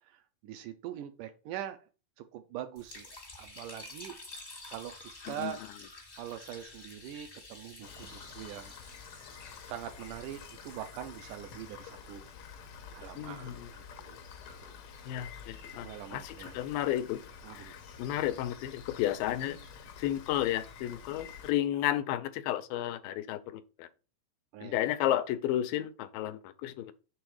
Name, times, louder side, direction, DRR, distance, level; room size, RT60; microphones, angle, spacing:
voice 1, 0.0-1.8 2.2-4.2 4.7-4.9 5.3-5.6 6.2-8.7 9.7-12.3 12.9-14.2 14.6-14.8 15.8-16.6 17.4-17.7 24.5-24.8, right 12 dB, 80° right, 1.9 m, -43 dB
Liquid, 2.7-12.9, left 2 dB, 40° left, 0.6 m, -51 dB
voice 2, 5.2-5.6 13.2-13.7 15.1-17.2 17.5-19.6 20.0-23.9 24.6-26.9, left 12 dB, 90° left, 2.4 m, -32 dB
Rain, 7.8-21.5, left 6 dB, 75° left, 1.6 m, -49 dB
6.2 x 3.5 x 4.8 m
omnidirectional pair, 4.0 m